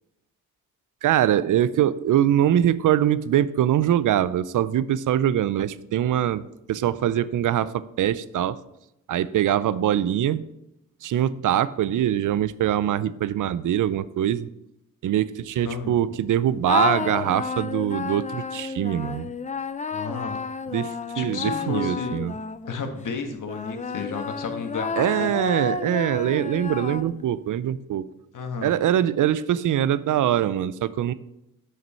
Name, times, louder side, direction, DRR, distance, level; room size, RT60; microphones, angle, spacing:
voice 1, 1.0-8.6 9.1-10.4 11.0-14.5 15.0-19.3 20.7-22.4 25.0-28.1 28.6-31.1, right 11 dB, 60° right, 17 dB, 0.5 m, -23 dB
voice 2, 15.6-16.0 19.9-20.4 21.1-22.2 22.7-25.3 28.3-28.7, left 5 dB, 60° left, 5 dB, 1.5 m, -32 dB
sound 1, 16.6-22.9 23.5-27.4, left 5 dB, 20° left, 0.5 m, -31 dB
7.7 x 5.8 x 4.4 m, 0.86 s
supercardioid pair, 60°, 36 cm